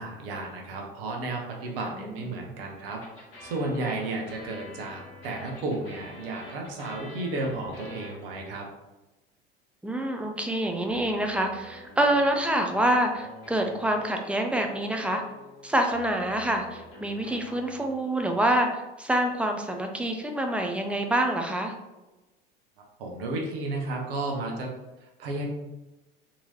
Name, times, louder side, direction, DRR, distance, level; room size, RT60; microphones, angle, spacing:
voice 1, 0.0-8.7 23.0-24.7 25.2-25.4, right 2 dB, 70° right, 0 dB, 0.9 m, -33 dB
sound 1, 2.9-8.6 10.9-18.4, left 2 dB, 75° left, 1.3 m, -47 dB
voice 2, 9.8-15.2 15.6-21.7, right 1 dB, 5° right, 3 dB, 0.5 m, -26 dB
3.8 x 2.9 x 2.8 m, 1.1 s
figure-of-eight pair, 70°, 30 cm